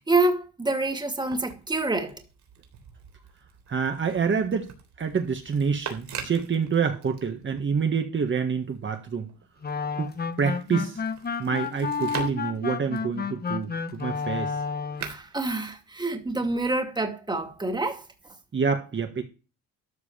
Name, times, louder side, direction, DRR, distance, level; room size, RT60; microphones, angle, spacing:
voice 1, 0.1-2.1 15.0-18.0, right 2 dB, 15° right, 2.4 m, -27 dB
sound 1, 1.0-8.0 8.4-16.5 17.4-18.1, right 7 dB, 65° right, 3.6 m, -44 dB
voice 2, 3.7-4.7 5.0-9.3 10.0-10.1 10.4-11.0 11.4-14.5 18.5-19.2, right 6 dB, 40° right, 1.7 m, -27 dB
sound 2, 9.6-15.2, left 5 dB, 30° left, 1.1 m, -31 dB
13.5 x 4.8 x 7.2 m
cardioid pair, 90°, 30 cm